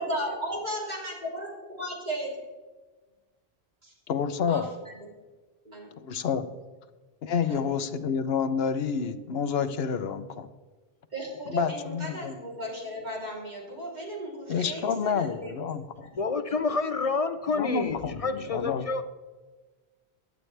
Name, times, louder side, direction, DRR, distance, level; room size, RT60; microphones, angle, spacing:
voice 1, 0.0-2.4 3.8-3.9 4.5-5.2 5.6-6.0 7.5-7.7 11.1-15.5 16.0-16.1, equal, 45° right, -3 dB, 3.6 m, -36 dB
voice 2, 4.1-4.7 6.0-6.4 7.2-10.5 11.5-12.4 14.5-16.1 17.5-18.9, left 6 dB, 70° left, 11 dB, 1.0 m, -29 dB
voice 3, 16.2-19.0, left 4 dB, 40° left, 10 dB, 0.6 m, -28 dB
16.0 x 11.0 x 3.3 m, 1.3 s
omnidirectional pair, 1.1 m